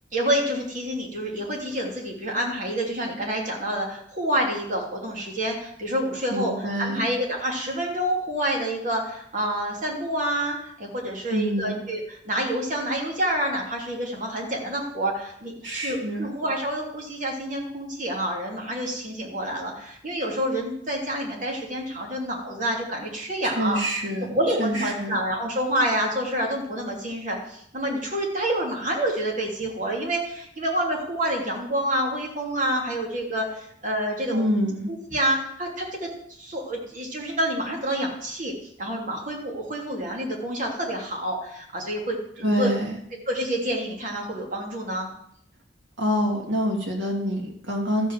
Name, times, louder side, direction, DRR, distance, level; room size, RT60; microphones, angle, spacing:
voice 1, 0.1-6.5 6.8-23.8 24.3-34.5 34.9-36.1 36.4-42.7 43.3-45.1, right 1 dB, 45° right, -1 dB, 3.1 m, -28 dB
voice 2, 6.3-7.0 11.3-11.8 15.6-16.3 23.4-24.3 24.6-25.2 34.3-34.9 42.4-43.0 46.0-48.1, equal, 75° right, 0 dB, 3.1 m, -26 dB
13.0 x 5.6 x 7.6 m, 0.69 s
head